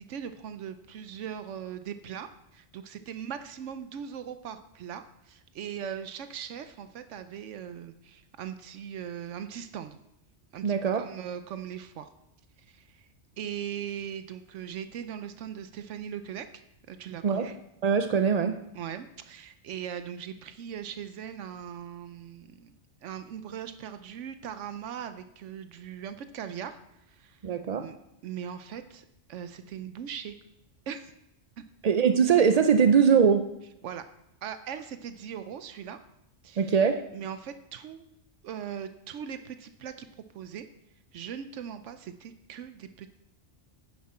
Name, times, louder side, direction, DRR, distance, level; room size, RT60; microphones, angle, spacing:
voice 1, 0.0-10.0 10.5-12.1 12.7-13.1 13.4-16.5 16.9-17.6 18.7-22.7 23.0-26.8 27.1-27.4 27.7-28.0 28.2-30.4 30.9-31.1 33.8-34.0 34.4-36.0 36.4-36.7 37.1-38.0 38.4-40.1 40.3-40.7 41.1-43.1, right 8 dB, 85° right, 10 dB, 1.0 m, -39 dB
voice 2, 10.6-11.1 17.2-17.5 17.8-18.6 27.4-27.9 31.8-33.6 36.6-37.0, right 6 dB, 60° right, 8 dB, 0.4 m, -22 dB
10.5 x 9.5 x 4.3 m, 0.87 s
omnidirectional pair, 1.2 m